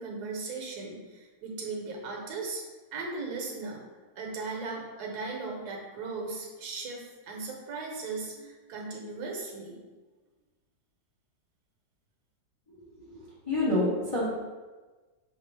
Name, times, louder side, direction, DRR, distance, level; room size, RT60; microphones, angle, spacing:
voice 1, 0.0-2.6 2.9-3.8 4.2-9.8, right 3 dB, 65° right, 0 dB, 1.4 m, -37 dB
voice 2, 13.4-14.3, left 1 dB, 30° left, -8 dB, 0.6 m, -27 dB
5.5 x 2.5 x 3.3 m, 1.3 s
omnidirectional pair, 1.9 m